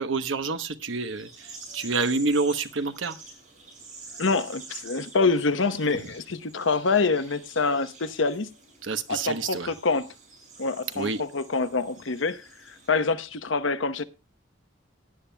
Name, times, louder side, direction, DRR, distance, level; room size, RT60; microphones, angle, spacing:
voice 1, 0.0-3.2 8.8-9.7 10.9-11.2, right 3 dB, 85° right, 1.0 m, -28 dB
sound 1, 0.8-12.9, right 4 dB, 40° right, 5.8 m, -47 dB
voice 2, 4.2-8.5 9.1-10.1 10.6-14.0, left 4 dB, 85° left, 0.9 m, -26 dB
17.5 x 10.5 x 2.3 m
head